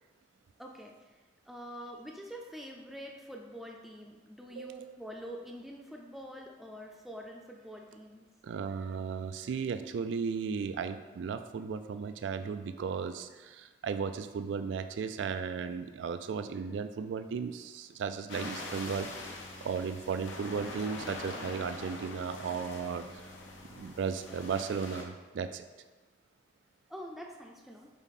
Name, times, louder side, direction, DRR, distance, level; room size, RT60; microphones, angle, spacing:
voice 1, 0.6-1.1 1.5-8.3 26.9-27.9, equal, ahead, 0 dB, 0.5 m, -45 dB
voice 2, 4.5-5.0 8.4-19.1 19.6-23.0 23.8-25.6, right 6 dB, 75° right, 10 dB, 0.3 m, -35 dB
sound 1, 18.3-25.0, left 2 dB, 90° left, 0.9 m, -43 dB
7.1 x 4.0 x 4.2 m, 1.3 s
head